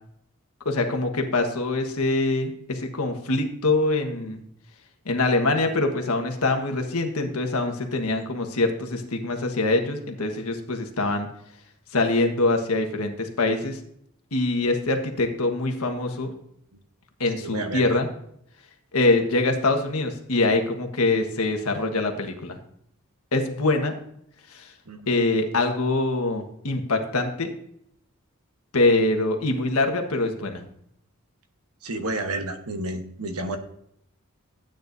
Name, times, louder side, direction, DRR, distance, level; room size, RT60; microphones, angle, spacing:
voice 1, 0.6-4.4 5.0-11.3 11.9-13.8 14.3-16.3 17.2-18.1 18.9-22.6 23.3-23.9 24.5-24.7 25.1-27.5 28.7-30.6, left 2 dB, 85° left, 4 dB, 1.4 m, -24 dB
voice 2, 17.4-18.0 24.9-25.1 31.8-33.6, right 2 dB, 80° right, 7 dB, 1.2 m, -31 dB
13.0 x 8.9 x 2.7 m, 0.71 s
head